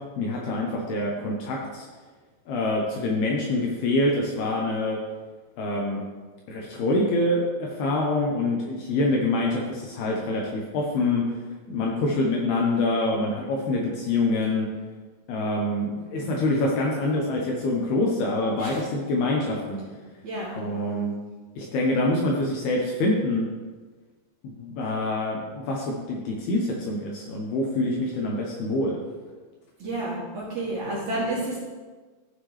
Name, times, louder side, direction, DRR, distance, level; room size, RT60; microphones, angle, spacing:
voice 1, 0.2-1.9 2.5-5.0 5.6-6.0 6.5-11.2 11.7-14.7 15.3-19.8 20.6-21.1 21.6-23.5 24.4-29.0, left 2 dB, 70° left, -2 dB, 2.6 m, -25 dB
voice 2, 20.2-20.6 29.8-31.6, right 1 dB, 45° right, -8 dB, 3.1 m, -30 dB
15.0 x 5.8 x 3.3 m, 1.3 s
omnidirectional pair, 5.3 m